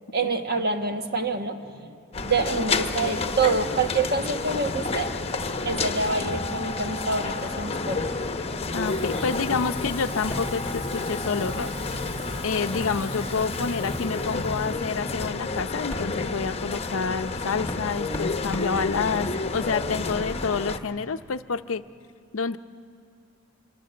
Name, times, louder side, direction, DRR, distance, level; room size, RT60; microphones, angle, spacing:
voice 1, 0.1-1.9 2.2-5.1 5.6-8.3, right 4 dB, 50° right, 6 dB, 1.4 m, -27 dB
sound 1, 2.1-20.8, left 3 dB, 30° left, 0.9 m, -30 dB
voice 2, 8.7-11.7 12.4-21.8 22.3-22.6, left 5 dB, 70° left, 11 dB, 0.6 m, -28 dB
Frying (food), 8.8-15.2, equal, 25° right, 5.9 m, -40 dB
foley Cardboard Box Hit, 9.4-9.6 9.8-10.6 12.2-12.4 12.8-12.9 13.4-13.6 14.4-14.5 15.0-16.1 17.2-17.3 17.7-19.4, left 1 dB, 10° left, 1.8 m, -39 dB
26.5 x 24.0 x 7.7 m, 2.4 s
head